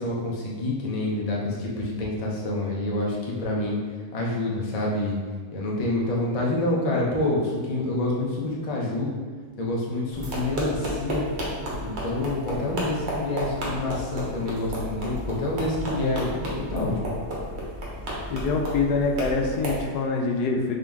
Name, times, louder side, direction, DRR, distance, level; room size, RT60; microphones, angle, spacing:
voice 1, 0.0-3.8 4.1-5.2 5.5-9.1 9.6-11.3 11.8-17.1, left 2 dB, 45° left, -3 dB, 0.4 m, -27 dB
sound 1, 10.1-19.8, right 1 dB, 50° right, 1.0 m, -32 dB
voice 2, 18.3-20.8, left 4 dB, 85° left, 2 dB, 1.1 m, -25 dB
3.8 x 2.8 x 3.5 m, 1.6 s
omnidirectional pair, 1.7 m